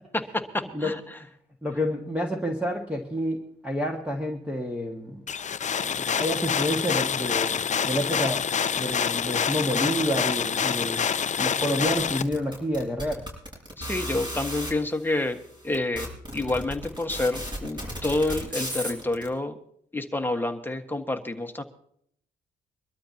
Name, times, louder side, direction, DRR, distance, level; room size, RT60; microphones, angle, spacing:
voice 1, 0.1-1.2 13.8-19.6 19.9-21.6, left 2 dB, 10° left, 5 dB, 1.5 m, -28 dB
voice 2, 1.6-5.2 5.8-7.5 7.9-8.5 8.8-11.0 11.4-13.2, equal, 5° right, 1 dB, 1.9 m, -29 dB
sound 1, 5.3-12.2, left 7 dB, 35° left, 0.6 m, -27 dB
sound 2, 11.9-14.7 15.4-15.5 15.7-19.3, equal, 25° right, 6.4 m, -34 dB
24.0 x 12.5 x 2.9 m, 0.66 s
cardioid pair, 90°, 20 cm